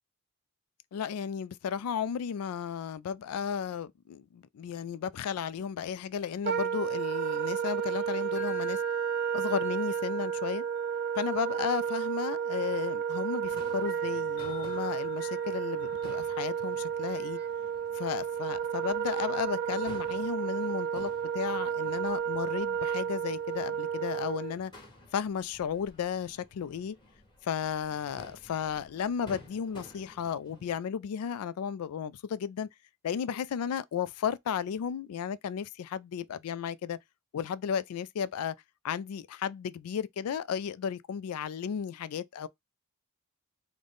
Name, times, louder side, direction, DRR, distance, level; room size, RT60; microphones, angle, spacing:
voice 1, 0.9-8.8 9.3-10.6 11.2-17.4 17.9-24.7 25.1-27.0 27.4-32.7 33.0-37.0 37.3-38.5 38.8-42.5, left 7 dB, 80° left, 0.3 m, -34 dB
Wind instrument woodwind instrument, 6.4-24.6, right 8 dB, 50° right, 0.3 m, -32 dB
sound 1, 8.0-16.9, left 10 dB, 55° left, 0.8 m, -50 dB
Crowd / Fireworks, 13.5-30.8, left 1 dB, 20° left, 1.3 m, -54 dB
3.8 x 2.1 x 3.4 m
head